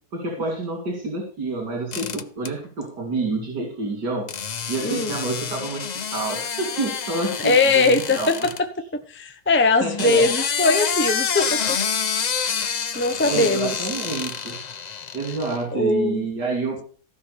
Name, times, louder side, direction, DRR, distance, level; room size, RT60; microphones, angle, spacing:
voice 1, 0.1-4.2 4.7-8.3 9.8-10.3 13.2-14.5 15.1-16.8, right 3 dB, 80° right, 1 dB, 3.5 m, -28 dB
sound 1, 1.9-2.5 4.3-8.6 9.8-15.6, left 6 dB, 85° left, 0.3 m, -28 dB
voice 2, 4.8-5.2 7.4-8.4 9.1-11.8 12.5-12.7 12.9-13.7 15.7-16.2, left 3 dB, 10° left, 8 dB, 0.9 m, -20 dB
15.0 x 6.1 x 6.7 m, 0.41 s
omnidirectional pair, 1.8 m